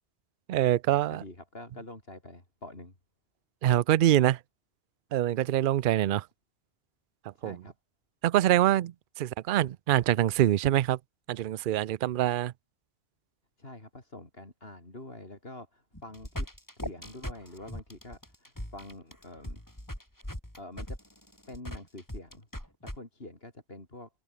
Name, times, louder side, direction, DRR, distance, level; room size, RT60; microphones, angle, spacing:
voice 1, 0.5-1.2 3.6-4.4 5.1-6.2 7.4-7.6 8.2-11.0 11.3-12.5, right 12 dB, 60° right, 0.6 m, -25 dB
voice 2, 1.1-2.9 7.3-7.7 13.6-16.5 16.8-19.6 20.6-21.0 21.5-24.1, left 2 dB, 60° left, 5.0 m, -46 dB
sound 1, 15.9-23.0, equal, 15° left, 6.5 m, -39 dB
omnidirectional pair, 1.1 m